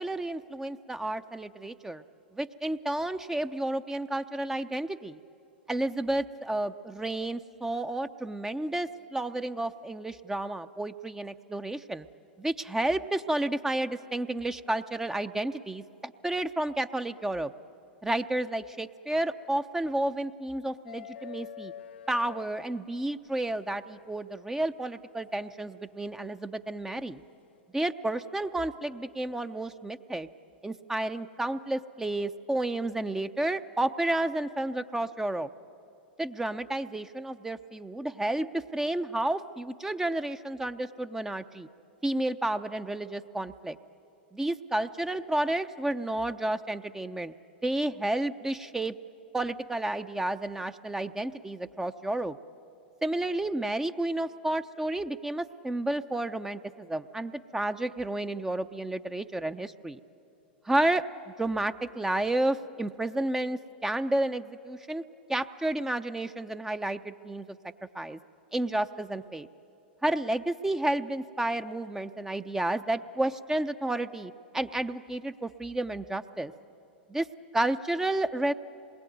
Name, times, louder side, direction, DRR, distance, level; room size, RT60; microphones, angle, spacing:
voice 1, 0.0-2.0 2.3-5.2 5.7-12.1 12.4-17.5 18.0-21.7 22.1-27.2 27.7-30.3 30.6-35.5 36.2-41.7 42.0-43.8 44.3-47.3 47.6-48.9 49.3-52.4 53.0-60.0 60.7-61.0 61.4-65.0 65.3-67.5 67.9-68.2 68.5-69.5 70.0-76.5 77.1-77.3 77.5-78.5, right 1 dB, 10° right, 10 dB, 0.6 m, -31 dB
sound 1, 20.9-23.3 24.9-25.0 26.8-27.0, left 9 dB, 80° left, 0.5 m, -45 dB
27.0 x 21.0 x 9.3 m, 2.9 s
hypercardioid pair, 105°, 6 cm